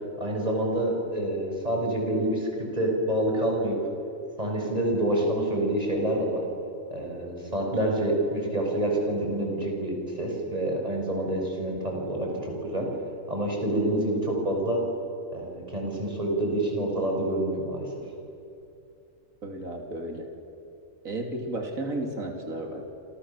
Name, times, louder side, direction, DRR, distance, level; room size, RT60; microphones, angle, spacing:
voice 1, 0.2-2.5 2.7-3.7 4.4-6.4 6.9-12.9 13.3-14.8 15.3-17.9, right 1 dB, 30° right, 0 dB, 6.6 m, -27 dB
voice 2, 19.4-20.3 21.0-22.9, right 1 dB, 80° right, 2 dB, 3.5 m, -33 dB
28.0 x 28.0 x 7.4 m, 2.8 s
omnidirectional pair, 1.4 m